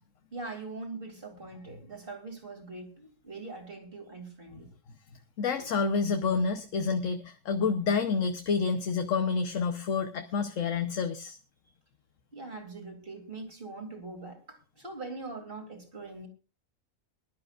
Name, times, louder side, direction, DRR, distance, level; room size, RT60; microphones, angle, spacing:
voice 1, 0.3-4.7 12.3-16.3, right 3 dB, 35° right, 4 dB, 2.9 m, -42 dB
voice 2, 5.4-11.4, left 5 dB, 60° left, 7 dB, 1.2 m, -28 dB
22.0 x 11.5 x 2.5 m, 0.31 s
omnidirectional pair, 1.5 m